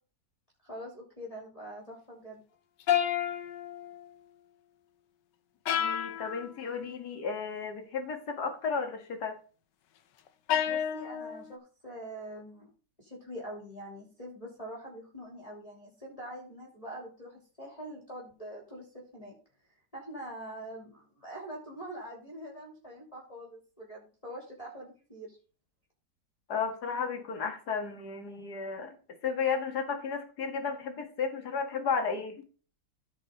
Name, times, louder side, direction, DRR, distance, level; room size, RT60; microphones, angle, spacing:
voice 1, 0.6-2.4 10.6-12.7 13.0-19.3 19.9-25.4, right 1 dB, 20° left, -3 dB, 3.1 m, -44 dB
sound 1, 2.9-4.0 5.7-6.5 10.5-11.5, left 9 dB, 85° left, 1.5 m, -30 dB
voice 2, 5.8-9.4 26.5-29.0 29.2-32.4, left 5 dB, 65° left, 5 dB, 2.3 m, -33 dB
15.0 x 5.5 x 4.0 m, 0.37 s
omnidirectional pair, 1.8 m